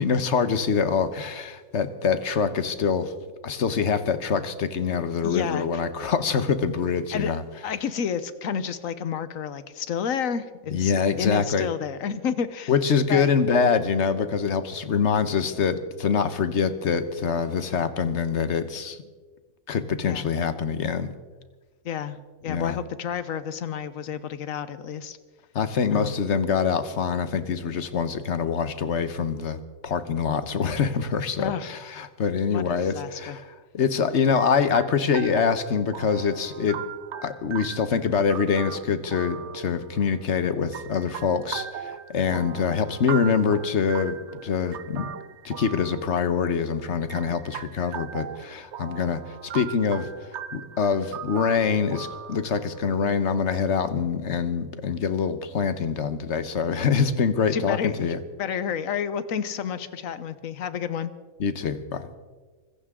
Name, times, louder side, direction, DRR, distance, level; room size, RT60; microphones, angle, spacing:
voice 1, 0.0-3.1 3.4-7.4 10.7-11.7 12.7-19.0 19.7-21.1 22.5-22.8 25.5-33.4 33.7-36.8 37.2-45.0 45.4-50.1 50.5-58.2 61.4-62.1, left 6 dB, 55° left, 11 dB, 1.2 m, -25 dB
voice 2, 5.2-5.8 7.1-7.3 7.6-12.7 13.1-13.3 20.1-20.3 21.8-22.2 22.4-25.2 25.9-26.2 31.3-31.7 32.5-33.4 57.5-61.1, left 7 dB, 70° left, 13 dB, 1.3 m, -30 dB
sound 1, 34.4-53.6, right 9 dB, 60° right, 0.9 m, -39 dB
25.0 x 15.0 x 3.7 m, 1.4 s
omnidirectional pair, 1.5 m